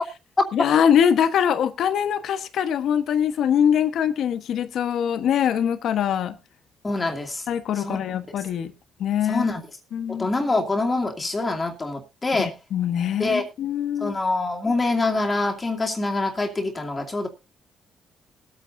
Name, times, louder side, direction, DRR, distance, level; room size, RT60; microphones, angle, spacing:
voice 1, 0.5-6.3 7.5-8.7 9.0-9.5 9.9-10.3 12.4-14.2, left 8 dB, 70° left, 1.2 m, -23 dB
voice 2, 6.8-7.4 7.8-8.0 9.3-9.6 10.1-12.5 13.2-13.5 14.0-17.3, left 2 dB, 25° left, 2.5 m, -25 dB
20.0 x 8.9 x 2.7 m
cardioid pair, 90°, 0 cm